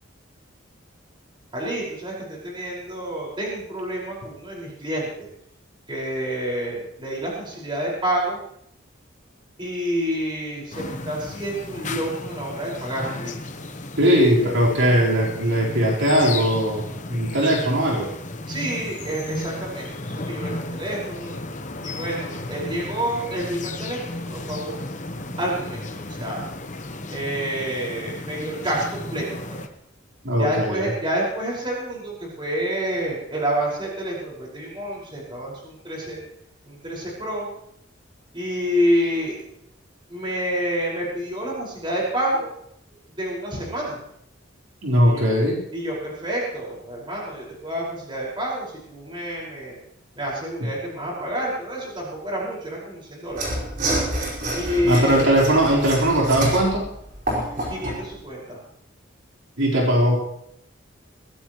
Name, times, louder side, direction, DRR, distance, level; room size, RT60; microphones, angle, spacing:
voice 1, 1.5-5.3 5.9-8.4 9.6-13.3 14.1-14.6 18.5-21.3 21.8-24.8 25.4-26.4 27.1-29.6 30.4-36.2 36.6-37.5 38.3-39.4 40.1-42.5 43.1-44.0 45.1-45.3 45.7-49.8 50.1-53.5 54.5-55.3 57.7-58.6, equal, 25° right, -4 dB, 5.4 m, -28 dB
sound 1, 10.7-29.7, left 2 dB, 40° left, 1.1 m, -34 dB
voice 2, 14.0-18.1 30.2-30.9 44.8-45.6 54.8-56.9 59.6-60.2, equal, 80° right, -4 dB, 4.3 m, -19 dB
Mechanisms / Sawing, 53.3-58.0, right 1 dB, 45° right, 5.2 m, -28 dB
22.0 x 16.0 x 3.1 m, 0.75 s
head